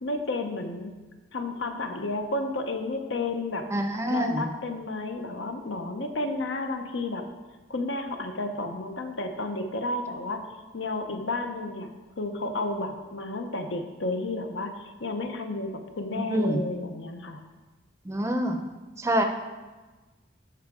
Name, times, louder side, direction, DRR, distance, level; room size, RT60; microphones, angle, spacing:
voice 1, 0.0-0.9 1.3-3.7 4.1-7.3 7.7-10.4 10.7-11.9 12.2-17.4, left 2 dB, 75° left, 5 dB, 0.9 m, -32 dB
voice 2, 3.7-4.5 16.2-16.6 18.1-18.6 19.0-19.2, equal, 15° right, 5 dB, 0.6 m, -26 dB
12.5 x 4.9 x 3.7 m, 1.2 s
head